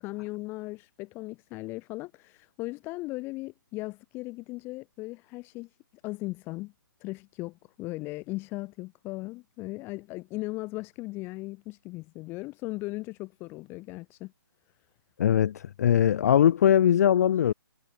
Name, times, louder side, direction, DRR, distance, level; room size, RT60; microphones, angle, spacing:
voice 1, 0.0-5.8 6.0-6.7 7.0-14.3, left 21 dB, 20° left, 0.8 m, -37 dB
voice 2, 15.2-17.5, left 10 dB, 45° left, 0.4 m, -21 dB
hypercardioid pair, 145°, 12 cm